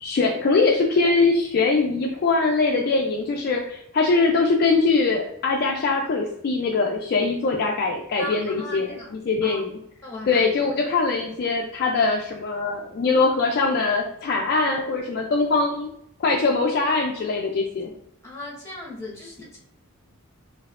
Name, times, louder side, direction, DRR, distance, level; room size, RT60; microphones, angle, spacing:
voice 1, 0.0-8.9 9.3-9.7 10.3-15.9 16.2-17.9, left 3 dB, 45° left, 0 dB, 0.3 m, -22 dB
voice 2, 8.2-9.1 9.4-9.6 10.0-10.5 18.2-19.6, left 1 dB, 15° left, -4 dB, 1.0 m, -37 dB
4.2 x 2.6 x 2.4 m, 0.75 s
head